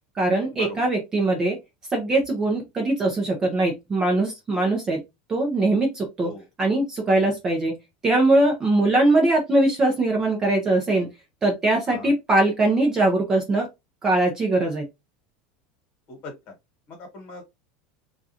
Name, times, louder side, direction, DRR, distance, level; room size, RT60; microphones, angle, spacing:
voice 1, 0.2-1.6 1.9-5.0 5.3-6.3 6.6-7.8 8.0-11.1 11.4-13.7 14.0-14.9, right 2 dB, 15° right, 0.6 m, -21 dB
voice 2, 16.1-16.5 16.9-17.4, left 2 dB, 35° left, 1.4 m, -39 dB
3.6 x 2.4 x 2.8 m
supercardioid pair, 175°, 4 cm